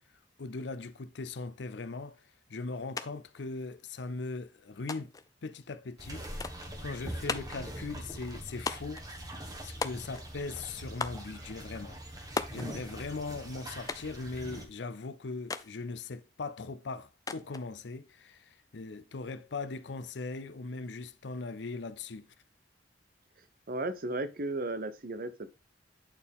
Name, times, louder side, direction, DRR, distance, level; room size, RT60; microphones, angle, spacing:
voice 1, 0.4-2.2 2.5-5.1 5.4-6.3 6.8-9.0 9.6-22.3, left 3 dB, 70° left, 0.6 m, -40 dB
sound 1, 3.0-3.1 3.3-4.1 4.9-5.3 6.4-6.7 7.3-7.7 8.7-9.1 9.8-10.3 11.0-11.3 12.4-12.7 13.9-14.2 15.5-15.7 17.3-17.7, left 4 dB, 20° left, 0.4 m, -36 dB
sound 2, 6.0-14.7, right 1 dB, 20° right, 1.3 m, -43 dB
voice 2, 23.7-25.5, right 2 dB, 55° right, 0.8 m, -35 dB
8.8 x 4.4 x 3.6 m
head